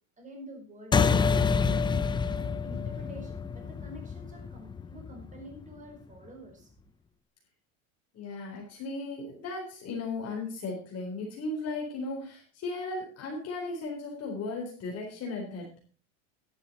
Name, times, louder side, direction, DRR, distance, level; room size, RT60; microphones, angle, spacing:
voice 1, 0.2-6.7, equal, 20° right, 4.5 m, -48 dB
sound 1, 0.9-5.7, left 5 dB, 10° left, 0.5 m, -28 dB
voice 2, 8.1-15.8, left 3 dB, 40° left, 4.2 m, -36 dB
11.5 x 11.0 x 4.3 m
supercardioid pair, 135°, 40 cm